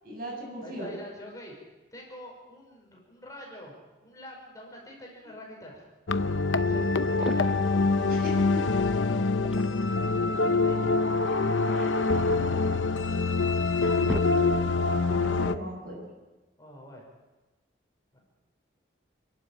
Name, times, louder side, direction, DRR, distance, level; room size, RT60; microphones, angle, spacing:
voice 1, 0.0-0.9 8.1-8.6 11.7-12.5 15.1-16.0, equal, 50° right, 0 dB, 7.7 m, -38 dB
voice 2, 0.6-3.7 4.0-5.8 6.6-7.6 10.2-11.2 16.6-17.0 18.1-18.2, equal, 20° left, -1 dB, 5.5 m, -46 dB
sound 1, 6.1-15.6, left 3 dB, 85° left, 0.8 m, -25 dB
sound 2, 7.0-7.8 9.2-10.0 11.3-12.7 13.3-13.4 13.7-14.9, equal, 5° right, 0.6 m, -39 dB
29.0 x 12.0 x 8.8 m, 1.2 s
head